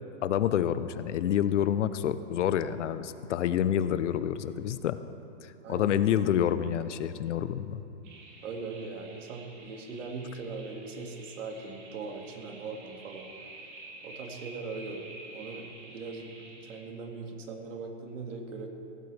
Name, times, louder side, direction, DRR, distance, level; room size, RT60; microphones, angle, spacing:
voice 1, 0.2-5.0 5.4-7.8, left 10 dB, 75° left, 13 dB, 0.8 m, -28 dB
voice 2, 5.6-6.0 8.4-13.2 14.0-15.0 15.3-18.7, right 4 dB, 85° right, 2 dB, 2.2 m, -40 dB
sound 1, 8.0-16.8, right 2 dB, 40° right, 3.5 m, -49 dB
16.5 x 15.5 x 3.4 m, 2.8 s
supercardioid pair, 175°, 37 cm